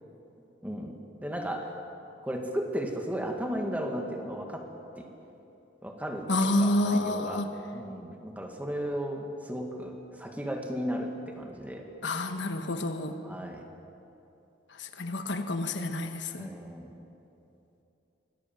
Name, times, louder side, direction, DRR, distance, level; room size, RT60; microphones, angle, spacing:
voice 1, 0.6-1.7 2.2-4.7 5.0-5.1 5.8-7.5 7.7-11.9 13.2-13.6 16.4-16.9, equal, 10° right, 2 dB, 2.0 m, -35 dB
voice 2, 6.3-7.5 12.0-13.1 14.8-16.5, left 1 dB, 80° left, 7 dB, 1.4 m, -28 dB
23.5 x 18.0 x 7.7 m, 2.9 s
head